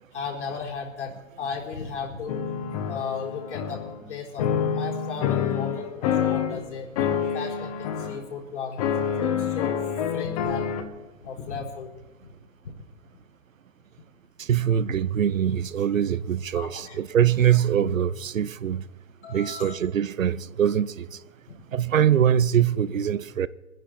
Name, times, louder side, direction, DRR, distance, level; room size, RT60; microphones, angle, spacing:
voice 1, 0.1-2.4 2.9-3.8 4.1-6.9 7.3-9.8 10.1-10.7 11.2-11.9 16.5-17.0 19.2-19.8, left 5 dB, 60° left, 4.3 m, -35 dB
sound 1, 2.3-4.0 4.4-6.6 7.0-8.2 8.8-10.8, left 8 dB, 30° left, 1.2 m, -27 dB
voice 2, 14.4-18.8 19.3-21.2 21.7-23.5, right 9 dB, 85° right, 0.8 m, -23 dB
21.0 x 10.5 x 4.3 m
hypercardioid pair, 150°, 39 cm